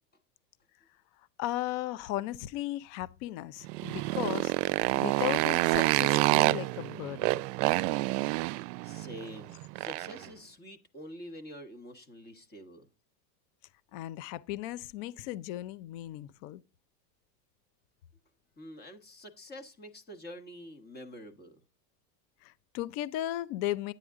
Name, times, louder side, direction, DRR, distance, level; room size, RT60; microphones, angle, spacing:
voice 1, 1.4-4.5 5.0-7.4 13.9-16.6 22.4-23.9, left 14 dB, 50° left, 0.6 m, -36 dB
Motorcycle, 3.6-10.3, right 22 dB, 70° right, 0.5 m, -28 dB
voice 2, 8.8-12.9 18.6-21.6, equal, 20° left, 1.2 m, -47 dB
10.0 x 9.0 x 3.6 m
supercardioid pair, 155°, 49 cm